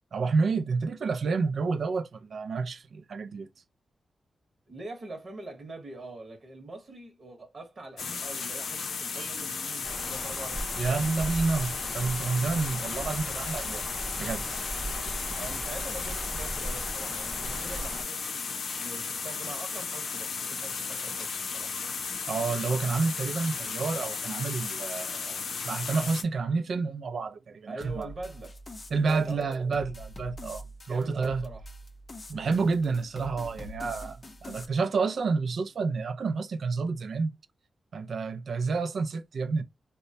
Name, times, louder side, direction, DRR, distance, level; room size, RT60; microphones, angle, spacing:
voice 1, 0.1-3.5 9.1-9.3 10.8-13.8 14.2-14.6 22.3-28.1 28.9-31.5 32.3-37.3 37.9-39.6, right 4 dB, 65° right, 0.4 m, -29 dB
voice 2, 4.7-11.5 15.4-21.8 27.7-28.6 28.9-29.7 30.9-31.7 32.3-32.6, right 2 dB, 50° right, 0.9 m, -44 dB
sound 1, 8.0-26.2, left 5 dB, 85° left, 0.6 m, -35 dB
sound 2, 9.8-18.0, right 1 dB, 10° right, 0.7 m, -38 dB
sound 3, 27.8-34.7, left 1 dB, 35° left, 0.5 m, -44 dB
3.1 x 2.1 x 2.6 m
wide cardioid pair, 110°, 0 cm